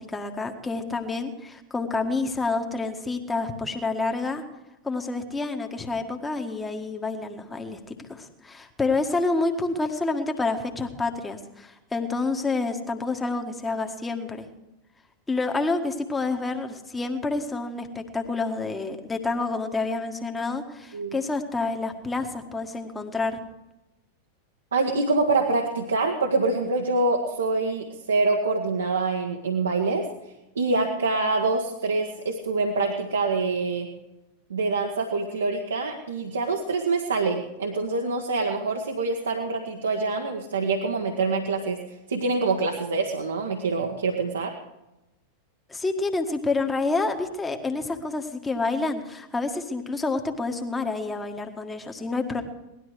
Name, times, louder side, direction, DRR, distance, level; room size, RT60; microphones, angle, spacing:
voice 1, 0.0-4.4 4.8-14.5 15.3-23.4 45.7-52.4, left 3 dB, 10° left, 4 dB, 1.7 m, -28 dB
voice 2, 24.7-30.0 30.5-33.9 34.5-44.6, right 3 dB, 70° right, 1 dB, 1.4 m, -25 dB
18.5 x 12.5 x 4.9 m, 0.96 s
figure-of-eight pair, 90°, 0 cm